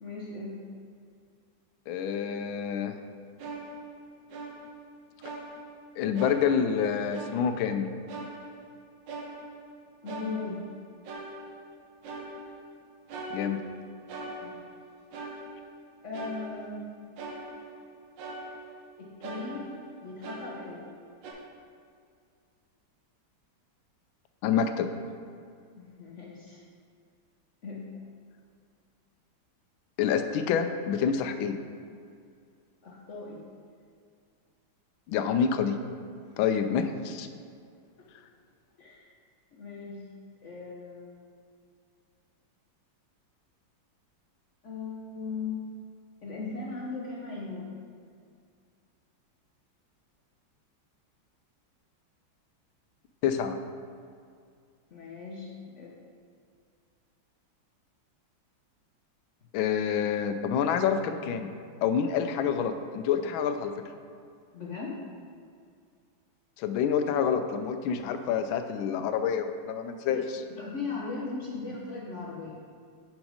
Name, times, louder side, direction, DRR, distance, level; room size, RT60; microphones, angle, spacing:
voice 1, 0.0-0.6 10.0-10.7 14.4-14.8 16.0-16.9 19.0-20.9 25.8-26.6 27.6-28.0 32.8-33.4 38.8-39.1 39.5-40.1 40.4-41.3 44.6-45.6 46.2-47.8 54.9-55.9 64.5-65.0 70.1-72.6, left 4 dB, 55° left, -3 dB, 0.8 m, -38 dB
voice 2, 1.9-3.0 6.0-7.9 13.3-13.6 24.4-24.9 30.0-31.6 35.1-35.8 36.4-37.3 53.2-53.6 59.5-61.5 61.8-63.7 66.6-70.2, left 7 dB, 85° left, 8 dB, 1.3 m, -27 dB
sound 1, 3.4-4.9 5.2-5.9 6.2-6.8 7.1-7.7 8.1-9.8 10.1-10.8 11.0-11.8 12.0-12.7 13.1-14.8 15.1-15.8 16.1-16.9 17.2-17.9 18.2-18.9 19.2-21.0 21.2-21.3, right 2 dB, 70° right, 1.5 m, -42 dB
6.2 x 5.2 x 5.0 m, 2.3 s
omnidirectional pair, 2.2 m